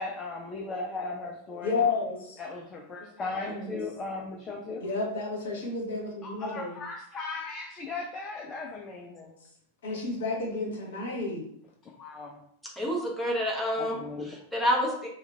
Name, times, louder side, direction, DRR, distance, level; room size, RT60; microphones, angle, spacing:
voice 1, 0.0-1.8 2.4-4.8 6.2-9.3 11.9-12.4 13.8-14.3, left 3 dB, 25° left, 1 dB, 0.4 m, -37 dB
voice 2, 1.6-2.4 3.4-3.7 4.8-6.8 9.8-11.4, left 3 dB, 60° left, -1 dB, 0.9 m, -31 dB
voice 3, 12.8-15.1, equal, ahead, -3 dB, 0.8 m, -28 dB
3.0 x 2.2 x 3.4 m, 0.67 s
figure-of-eight pair, 90°, 0 cm